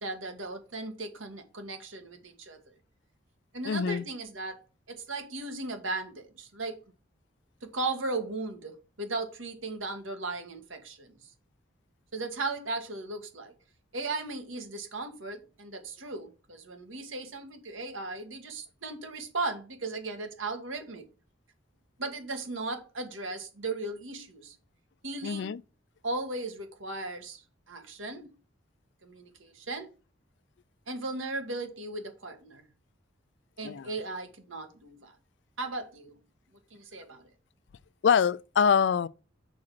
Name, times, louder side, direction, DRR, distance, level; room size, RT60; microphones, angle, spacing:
voice 1, 0.0-2.6 3.5-4.6 4.9-6.8 7.6-11.1 12.1-13.5 13.9-21.1 22.0-24.5 25.0-25.5 26.0-28.3 29.0-29.9 30.9-32.6 33.6-35.1 35.6-36.1 36.7-37.3, right 3 dB, 85° right, 1.7 m, -37 dB
voice 2, 3.6-4.1 25.2-25.6 33.6-33.9 38.0-39.1, left 7 dB, 60° left, 0.3 m, -25 dB
6.3 x 4.9 x 5.7 m
head